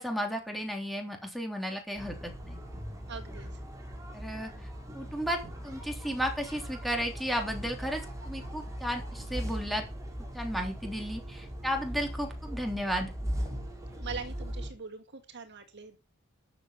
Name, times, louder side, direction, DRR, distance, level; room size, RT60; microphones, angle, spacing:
voice 1, 0.0-2.6 4.1-4.5 4.9-9.8 10.3-13.1, equal, ahead, 3 dB, 3.3 m, -34 dB
sound 1, 2.0-14.7, equal, 15° right, 3.8 m, -39 dB
voice 2, 3.1-3.5 14.0-16.0, right 5 dB, 55° right, 7 dB, 1.9 m, -42 dB
12.5 x 7.1 x 6.8 m, 0.31 s
head